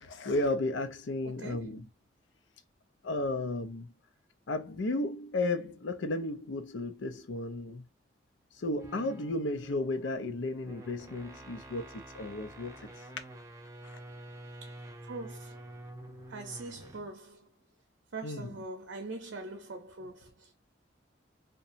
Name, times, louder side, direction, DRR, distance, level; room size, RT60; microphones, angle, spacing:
voice 1, 0.0-1.9 3.0-3.9 4.5-7.9 8.5-13.0 13.8-14.0 18.2-18.5, left 2 dB, 85° left, 0.5 m, -34 dB
voice 2, 1.2-1.8 14.6-15.6 16.3-17.6 18.1-20.5, right 3 dB, 85° right, 0.6 m, -43 dB
sound 1, 8.7-17.1, right 1 dB, 15° right, 0.4 m, -49 dB
2.8 x 2.2 x 2.5 m
head